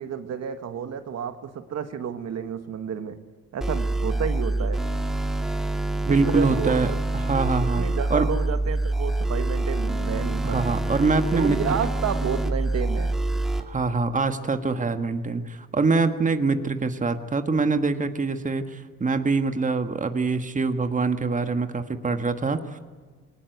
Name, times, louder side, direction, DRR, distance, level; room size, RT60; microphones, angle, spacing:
voice 1, 0.0-3.2 3.5-4.8 6.1-6.8 7.7-10.7 11.3-13.2, right 7 dB, 60° right, 9 dB, 1.5 m, -31 dB
sound 1, 3.6-13.6, right 2 dB, ahead, 2.3 m, -26 dB
voice 2, 6.0-7.8 8.1-8.3 10.4-11.8 13.7-22.8, right 4 dB, 25° right, 8 dB, 1.5 m, -24 dB
22.0 x 19.0 x 9.3 m, 1.5 s
cardioid pair, 90°, 30 cm